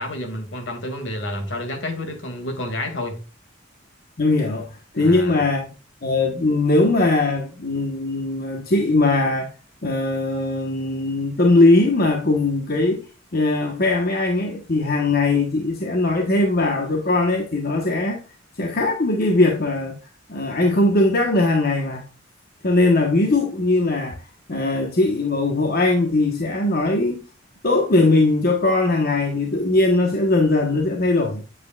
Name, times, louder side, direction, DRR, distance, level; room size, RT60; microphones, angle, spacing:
voice 1, 0.0-3.2 5.0-5.4, left 1 dB, 70° left, 2.2 m, -29 dB
voice 2, 4.2-5.6 6.0-9.5 9.8-13.0 13.3-18.2 18.6-20.0 20.3-22.0 22.6-24.2 24.5-27.2 27.6-31.4, left 2 dB, 50° left, 1.1 m, -20 dB
8.3 x 8.1 x 2.3 m
head